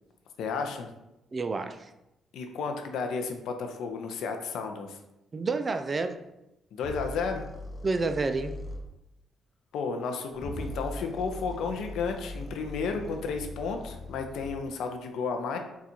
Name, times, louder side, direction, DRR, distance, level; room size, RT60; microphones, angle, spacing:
voice 1, 0.4-0.9 2.3-5.0 6.7-7.4 9.7-15.6, left 5 dB, 80° left, 4 dB, 0.5 m, -32 dB
voice 2, 1.3-1.8 5.3-6.2 7.8-8.5, right 3 dB, 30° right, 8 dB, 0.4 m, -29 dB
sound 1, 6.8-8.8 10.3-14.7, left 1 dB, 25° left, 0.7 m, -40 dB
3.9 x 2.4 x 4.3 m, 0.89 s
cardioid pair, 90°, 0 cm